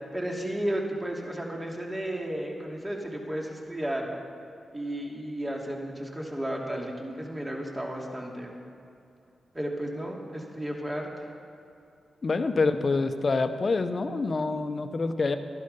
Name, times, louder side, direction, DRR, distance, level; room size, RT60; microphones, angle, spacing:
voice 1, 0.1-4.1 4.7-8.6 9.5-11.1, right 1 dB, 20° right, -1 dB, 2.8 m, -33 dB
voice 2, 12.2-15.4, left 3 dB, 50° left, 9 dB, 0.9 m, -26 dB
13.0 x 11.5 x 5.5 m, 2.6 s
supercardioid pair, 45°, 0 cm